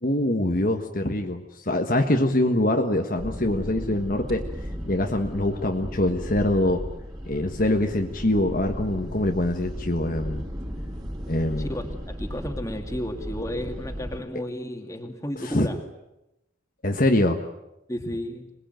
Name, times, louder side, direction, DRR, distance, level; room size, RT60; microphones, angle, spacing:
voice 1, 0.0-4.4 4.8-6.8 7.2-10.4 11.3-11.7 15.4-15.7 16.8-17.4, left 1 dB, 45° left, 4 dB, 1.5 m, -24 dB
sound 1, 3.2-14.2, equal, 20° right, 5.0 m, -35 dB
voice 2, 11.6-15.8 17.9-18.5, equal, 15° left, 5 dB, 2.6 m, -33 dB
26.0 x 20.5 x 9.2 m, 0.93 s
head